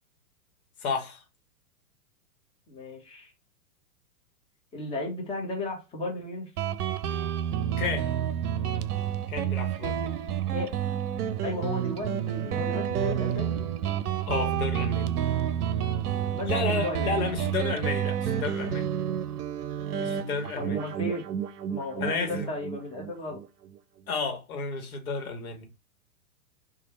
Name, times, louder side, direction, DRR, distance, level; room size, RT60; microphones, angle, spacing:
voice 1, 0.8-1.2 7.8-8.1 9.3-10.2 14.3-15.1 16.4-18.9 20.0-20.8 22.0-22.5 24.1-25.7, left 4 dB, 70° left, 1.2 m, -31 dB
voice 2, 2.7-3.3 4.7-6.5 10.5-10.7 11.4-13.6 16.3-17.3 20.6-21.2 21.7-23.4, left 2 dB, 10° left, 1.0 m, -35 dB
Guitar, 6.6-23.8, right 9 dB, 80° right, 0.6 m, -29 dB
3.2 x 2.4 x 3.0 m
hypercardioid pair, 125°, 45 cm